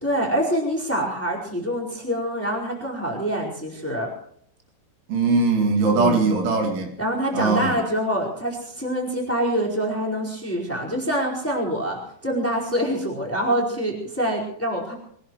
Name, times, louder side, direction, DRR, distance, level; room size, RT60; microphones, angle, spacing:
voice 1, 0.0-4.1 6.0-6.2 7.0-14.9, equal, 5° left, -2 dB, 3.8 m, -25 dB
voice 2, 5.1-6.9 7.3-7.8, right 3 dB, 80° right, 2 dB, 5.0 m, -20 dB
24.0 x 19.0 x 3.1 m, 0.64 s
omnidirectional pair, 5.4 m